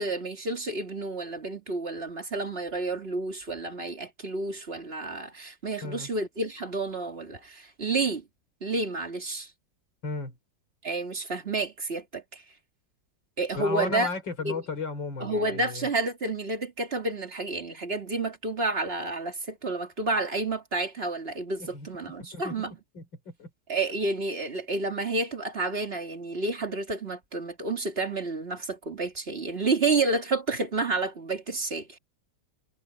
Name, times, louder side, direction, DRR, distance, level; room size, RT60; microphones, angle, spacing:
voice 1, 0.0-8.2 8.6-9.5 10.8-12.4 13.4-14.1 14.4-14.5 15.2-22.7 23.7-32.0, right 3 dB, 30° right, 2.7 m, -30 dB
voice 2, 10.0-10.3 13.6-15.9 21.6-21.9 22.2-22.6 22.9-23.5, left 3 dB, 80° left, 4.9 m, -35 dB
omnidirectional pair, 2.0 m